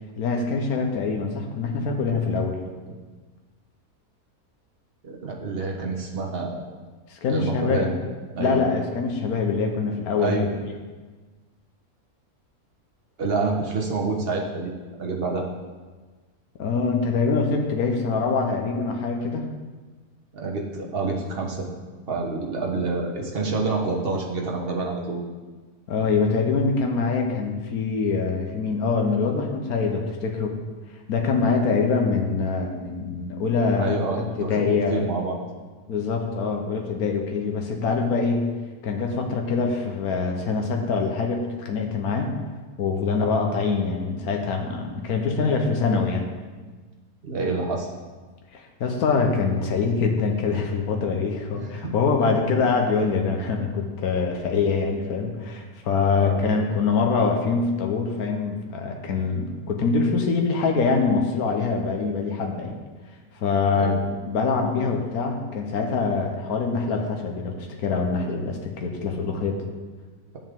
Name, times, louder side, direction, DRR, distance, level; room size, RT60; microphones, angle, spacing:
voice 1, 0.2-2.6 7.1-7.9 8.4-10.6 16.6-19.4 25.9-30.5 31.1-35.0 35.9-38.5 38.8-42.3 42.8-46.3 48.5-62.7 63.3-69.6, left 4 dB, 80° left, 2 dB, 1.4 m, -24 dB
voice 2, 5.0-6.7 7.3-7.9 8.3-8.6 10.2-10.5 13.2-14.7 15.0-15.4 20.3-21.7 22.1-25.2 33.8-34.6 34.9-35.4 45.9-46.0 47.2-47.9 51.5-52.3 56.1-56.4 63.7-64.0, right 3 dB, 45° right, 0 dB, 1.3 m, -27 dB
9.8 x 7.2 x 3.7 m, 1.3 s
omnidirectional pair, 1.6 m